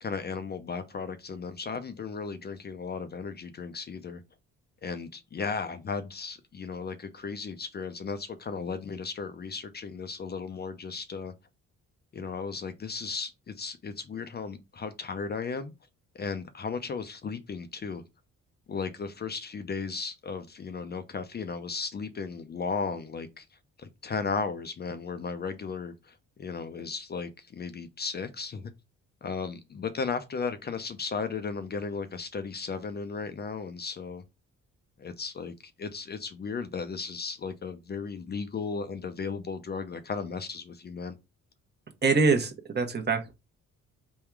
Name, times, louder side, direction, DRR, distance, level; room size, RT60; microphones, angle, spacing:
voice 1, 0.0-4.2 4.8-11.3 12.1-15.7 16.1-18.0 18.7-23.5 23.8-28.7 29.2-34.2 35.0-41.1, left 5 dB, 35° left, 0.5 m, -35 dB
voice 2, 42.0-43.3, right 4 dB, 35° right, 0.9 m, -24 dB
3.6 x 2.3 x 4.4 m
cardioid pair, 90°, 30 cm